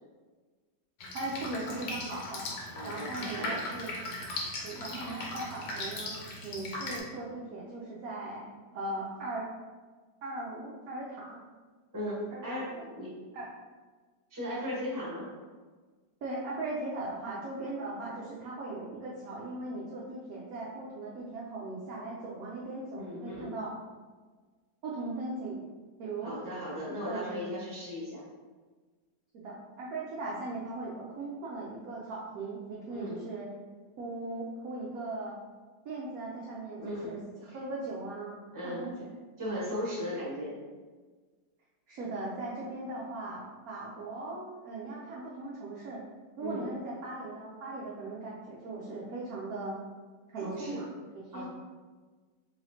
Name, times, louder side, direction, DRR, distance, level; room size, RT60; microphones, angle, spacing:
Drip, 1.0-7.0, left 2 dB, 70° left, 1.2 m, -38 dB
voice 1, 1.1-2.5 2.8-3.9 4.6-6.2 6.4-9.5 10.2-11.4 12.3-12.8 13.3-13.5 16.2-23.7 24.8-25.6 26.0-26.4 27.0-27.5 29.3-33.5 34.0-35.4 35.8-38.4 38.6-39.1 41.9-46.0 46.4-49.8 50.3-51.5, right 2 dB, 70° right, -5 dB, 0.9 m, -38 dB
voice 2, 2.7-3.6 11.9-13.1 14.3-15.3 22.9-23.5 26.2-28.2 32.9-33.2 36.8-37.1 37.5-37.6 38.5-38.8 39.4-40.6 46.4-46.7 50.4-50.8 51.3-51.5, equal, 15° right, -7 dB, 0.9 m, -37 dB
3.9 x 3.1 x 2.7 m, 1.4 s
omnidirectional pair, 2.0 m